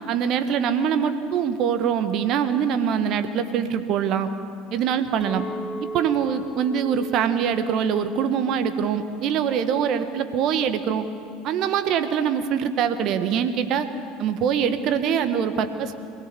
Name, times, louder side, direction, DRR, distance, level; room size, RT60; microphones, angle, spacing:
voice 1, 0.1-4.3 4.7-5.4 5.8-11.1 11.4-13.9 14.2-15.9, right 8 dB, 50° right, 9 dB, 1.4 m, -23 dB
Chink clink, 5.2-10.4, right 1 dB, 5° left, 5.1 m, -39 dB
23.0 x 17.5 x 7.0 m, 2.3 s
hypercardioid pair, 70°, 0 cm